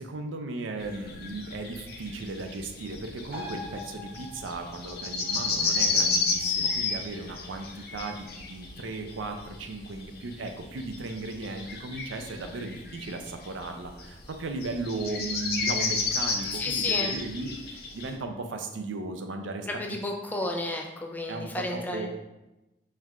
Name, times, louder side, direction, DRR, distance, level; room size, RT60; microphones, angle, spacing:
voice 1, 0.0-20.0 21.3-22.1, right 3 dB, 80° right, 5 dB, 0.5 m, -36 dB
sound 1, 0.8-18.1, left 4 dB, 55° left, 0.6 m, -31 dB
sound 2, 3.3-10.3 10.6-10.7, left 2 dB, 55° right, 1.4 m, -47 dB
voice 2, 16.5-17.1 19.7-22.1, left 1 dB, 10° left, 1 dB, 0.3 m, -32 dB
4.5 x 2.4 x 3.5 m, 0.97 s
head